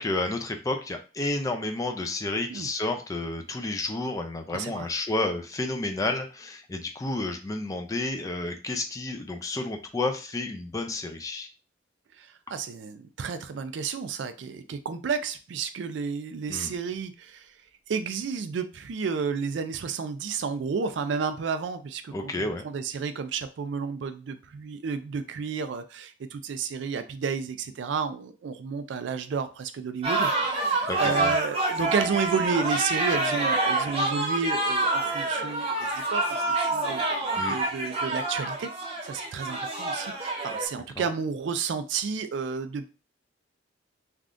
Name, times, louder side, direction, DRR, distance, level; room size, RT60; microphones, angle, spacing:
voice 1, 0.0-11.5 16.5-16.7 22.1-22.6 30.9-31.3 37.4-37.6 41.0-41.1, left 2 dB, 20° left, 5 dB, 0.4 m, -31 dB
voice 2, 4.5-4.9 12.2-17.5 17.9-38.7 39.0-42.9, right 5 dB, 70° right, 10 dB, 0.4 m, -31 dB
sound 1, 30.0-40.7, right 2 dB, 30° right, 0.8 m, -27 dB
3.4 x 2.3 x 2.5 m, 0.33 s
head